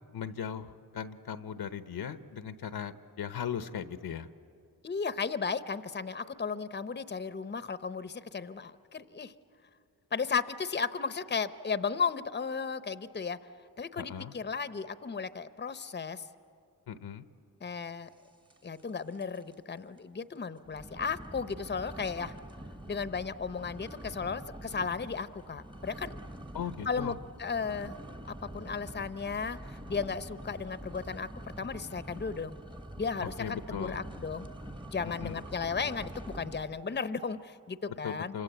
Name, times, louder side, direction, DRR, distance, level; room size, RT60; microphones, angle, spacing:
voice 1, 0.1-4.3 14.0-14.3 16.9-17.2 26.5-27.1 33.4-34.0 35.0-35.4 38.0-38.4, left 8 dB, 75° left, 11 dB, 1.0 m, -38 dB
voice 2, 4.8-9.3 10.1-13.4 13.8-16.3 17.6-18.1 18.6-22.3 22.9-26.2 26.9-27.1 27.4-31.3 31.6-32.6 33.0-34.5 34.9-38.4, left 5 dB, 25° left, 13 dB, 0.8 m, -35 dB
sound 1, 18.5-18.9 19.1-19.5 20.0-20.1 20.6-36.8, right 1 dB, 10° right, 1.1 m, -45 dB
28.0 x 26.0 x 8.1 m, 2.5 s
cardioid pair, 65°, 39 cm